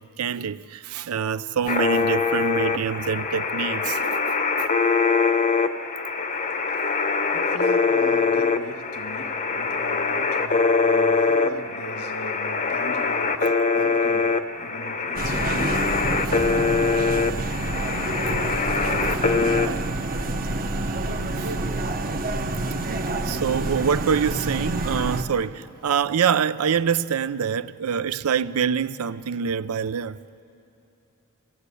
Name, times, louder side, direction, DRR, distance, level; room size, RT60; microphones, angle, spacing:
voice 1, 0.0-4.7 13.4-13.5 16.3-16.4 18.3-18.4 18.7-19.8 20.6-21.1 21.4-21.5 23.2-30.2, right 7 dB, 75° right, 0.5 m, -26 dB
sound 1, 1.7-19.7, left 4 dB, 35° left, 0.8 m, -23 dB
voice 2, 6.4-16.7, left 1 dB, 85° left, 1.6 m, -39 dB
sound 2, 15.2-25.2, right 2 dB, 40° right, 0.9 m, -27 dB
25.0 x 17.0 x 8.3 m
head